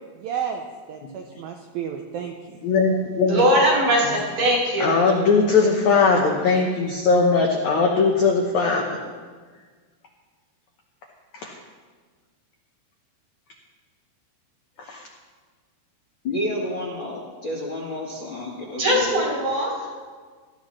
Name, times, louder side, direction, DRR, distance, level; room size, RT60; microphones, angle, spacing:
voice 1, 0.2-2.6, right 8 dB, 80° right, 3 dB, 2.2 m, -32 dB
voice 2, 2.6-3.5 4.8-9.0 11.3-11.6 14.9-15.0, left 4 dB, 75° left, 0 dB, 1.7 m, -20 dB
voice 3, 3.3-4.9 18.8-19.7, equal, 60° right, -5 dB, 5.5 m, -20 dB
voice 4, 16.2-19.3, left 1 dB, 45° left, -5 dB, 1.7 m, -30 dB
17.0 x 13.5 x 3.2 m, 1.5 s
omnidirectional pair, 4.9 m